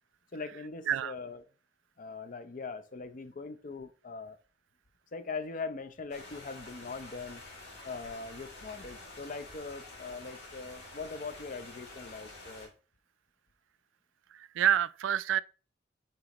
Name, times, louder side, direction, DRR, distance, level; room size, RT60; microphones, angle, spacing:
voice 1, 0.3-1.4 2.0-4.4 5.1-7.4 7.8-12.7, left 4 dB, 45° left, 0.6 m, -41 dB
sound 1, 6.1-12.7, left 2 dB, 60° left, 2.6 m, -48 dB
voice 2, 14.3-15.4, right 10 dB, 80° right, 0.3 m, -28 dB
8.7 x 4.1 x 2.9 m
head